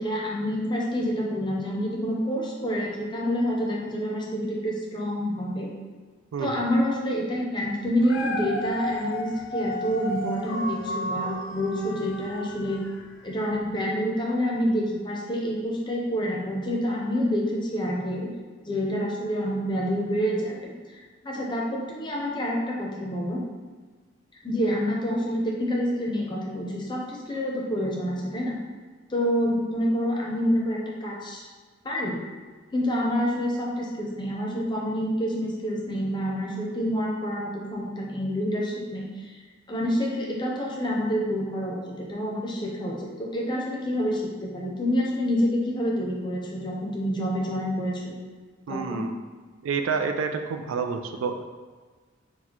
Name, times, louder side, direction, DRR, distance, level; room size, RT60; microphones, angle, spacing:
voice 1, 0.0-5.7 6.4-12.8 13.2-18.3 18.6-23.4 24.4-28.6 29.1-31.5 31.8-32.2 32.7-39.3 39.7-48.1 48.7-49.1, equal, 25° left, -2 dB, 0.6 m, -27 dB
Dog, 7.8-13.2 13.7-13.8, equal, 65° left, 0.4 m, -33 dB
voice 2, 48.7-49.1 49.6-51.4, right 5 dB, 80° right, 6 dB, 0.3 m, -28 dB
4.0 x 2.2 x 4.4 m, 1.5 s
head